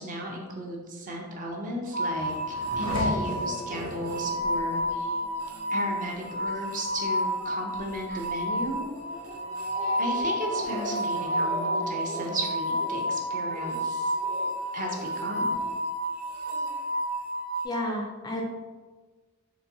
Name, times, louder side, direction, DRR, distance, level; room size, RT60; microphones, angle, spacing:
voice 1, 0.0-5.2 5.7-8.8 10.0-14.1 14.7-15.6, equal, 40° right, 0 dB, 0.5 m, -35 dB
Race car auto racing / Accelerating revving vroom, 1.6-14.7 15.1-15.8, left 1 dB, 85° left, 0.6 m, -39 dB
sound 1, 1.9-17.7, equal, 80° right, 0.7 m, -30 dB
Speech, 9.3-10.3 10.5-10.9 11.3-11.7 12.0-12.3 12.7-13.0 13.4-13.7 14.1-14.5 14.9-15.7 16.5-16.7, right 1 dB, 60° right, 1.1 m, -42 dB
voice 2, 17.6-18.4, left 1 dB, 20° left, 0 dB, 0.3 m, -31 dB
4.0 x 2.2 x 2.6 m, 1.3 s
head